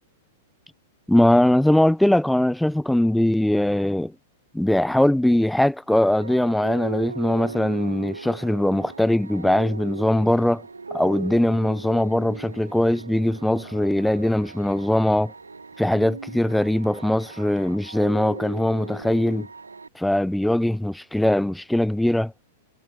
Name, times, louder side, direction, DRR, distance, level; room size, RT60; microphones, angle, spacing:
voice 1, 1.1-4.1 4.5-10.6 10.9-15.3 15.8-19.5 19.9-22.3, left 1 dB, ahead, 3.0 m, -21 dB
sound 1, 6.2-19.9, right 4 dB, 75° right, 4.2 m, -38 dB
figure-of-eight pair, 100°, 0 cm